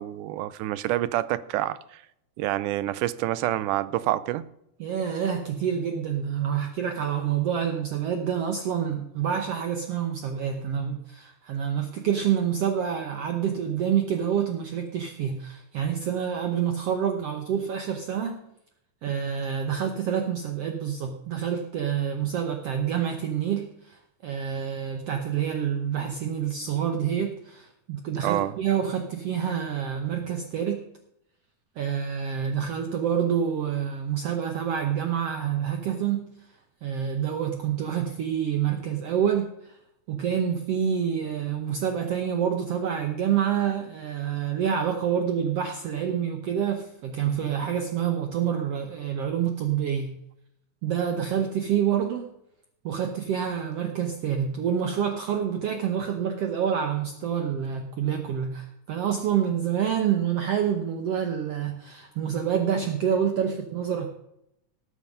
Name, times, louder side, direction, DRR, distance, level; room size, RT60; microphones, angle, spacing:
voice 1, 0.0-2.0 2.4-4.5 28.2-28.6, right 14 dB, 90° right, 2.2 m, -27 dB
voice 2, 4.8-18.4 19.0-30.8 31.8-36.3 36.8-39.8 40.1-50.2 50.8-52.3 52.8-64.1, right 8 dB, 65° right, 1.8 m, -27 dB
19.0 x 7.4 x 5.3 m
omnidirectional pair, 3.5 m